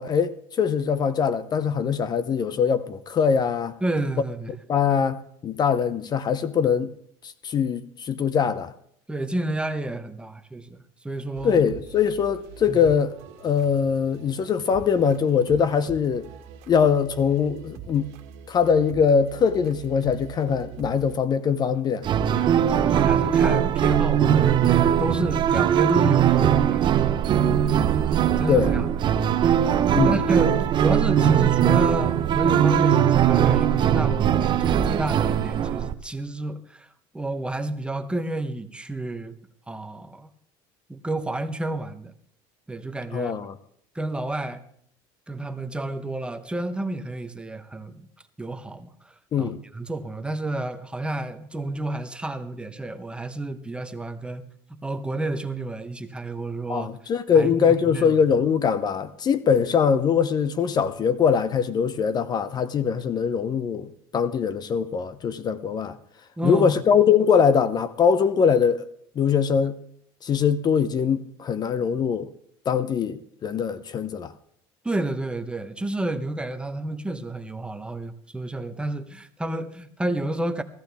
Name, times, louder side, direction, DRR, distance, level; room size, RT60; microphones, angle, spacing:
voice 1, 0.0-3.7 4.7-6.9 7.2-8.7 11.4-13.2 13.4-16.3 16.7-18.1 18.5-22.0 28.5-28.7 29.9-30.2 43.1-43.5 49.3-49.6 56.7-66.0 66.4-68.8 69.2-69.8 70.2-72.3 72.7-74.3, left 7 dB, 40° left, 0.7 m, -22 dB
voice 2, 3.8-4.5 9.1-11.6 12.7-12.9 22.3-27.2 28.4-28.9 30.0-39.3 39.7-40.3 40.9-42.1 42.7-43.3 43.9-44.6 45.3-48.1 48.4-54.4 54.8-56.9 57.3-58.2 66.4-66.8 74.8-80.6, right 2 dB, 10° right, 1.0 m, -30 dB
sound 1, 11.3-21.2, right 7 dB, 75° right, 1.7 m, -43 dB
sound 2, 22.0-35.9, right 9 dB, 45° right, 0.8 m, -20 dB
17.0 x 14.5 x 3.5 m
supercardioid pair, 110°, 11 cm